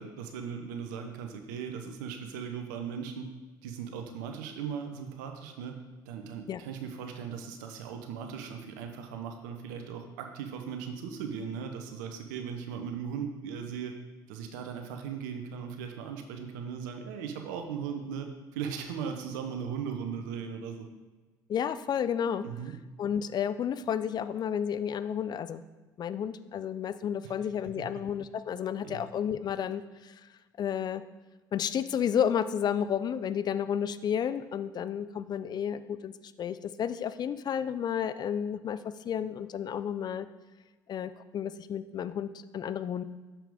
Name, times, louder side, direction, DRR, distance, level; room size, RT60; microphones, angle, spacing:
voice 1, 0.0-3.3 3.6-5.8 6.1-14.0 14.3-20.9 22.4-22.7 27.2-27.3 27.6-27.9 28.8-29.0, right 7 dB, 80° right, 5 dB, 0.8 m, -38 dB
voice 2, 21.5-22.4 23.0-25.6 26.0-30.2 30.6-31.0 31.5-36.1 36.4-38.8 39.0-40.3 40.9-43.0, left 8 dB, 45° left, 13 dB, 0.4 m, -31 dB
6.9 x 5.7 x 3.6 m, 1.2 s
hypercardioid pair, 60°, 10 cm